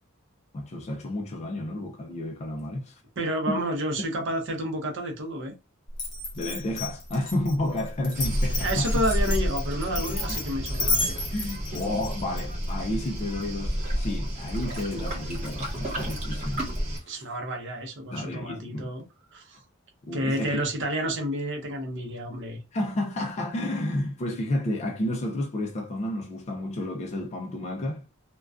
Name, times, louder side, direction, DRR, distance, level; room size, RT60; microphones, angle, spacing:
voice 1, 0.5-3.0 3.5-3.6 6.3-9.0 11.3-16.7 17.0-17.1 18.1-18.9 20.1-20.6 22.7-28.1, left 1 dB, 30° left, 0.3 m, -31 dB
voice 2, 3.2-5.5 8.6-11.2 17.1-19.0 19.3-19.6 20.1-22.6, equal, 60° right, 0.6 m, -30 dB
Glass, 5.9-12.4, left 2 dB, 60° left, 0.9 m, -32 dB
Waves surf, 8.1-17.0, equal, 35° right, 1.1 m, -30 dB
2.4 x 2.2 x 2.3 m
head